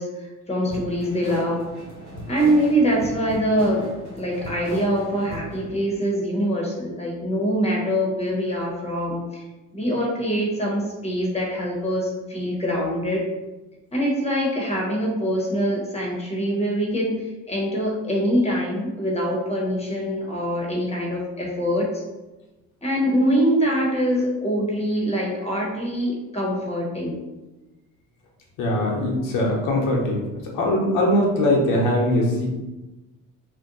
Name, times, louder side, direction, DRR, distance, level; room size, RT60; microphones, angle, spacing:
voice 1, 0.0-1.7 2.3-9.4 9.7-13.2 13.9-22.0 22.8-27.2, equal, 20° left, -2 dB, 1.0 m, -24 dB
sound 1, 0.7-5.8, equal, 65° right, 1.2 m, -37 dB
voice 2, 28.6-30.2 30.5-32.5, left 1 dB, 85° left, -2 dB, 0.8 m, -21 dB
2.5 x 2.2 x 3.9 m, 1.1 s
cardioid pair, 110°, 32 cm